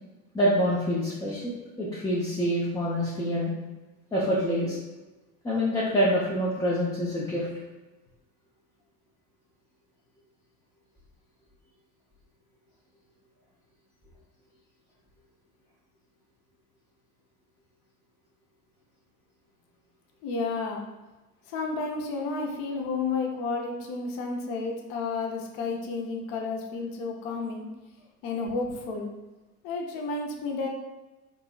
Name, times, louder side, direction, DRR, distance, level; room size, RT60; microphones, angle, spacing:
voice 1, 0.3-3.5 4.1-4.8 5.4-7.5, equal, 10° left, -8 dB, 0.5 m, -26 dB
voice 2, 20.2-20.8 21.5-27.7 28.2-29.1 29.6-30.7, left 4 dB, 45° left, 1 dB, 0.7 m, -31 dB
3.8 x 2.8 x 2.3 m, 1.1 s
hypercardioid pair, 85°, 46 cm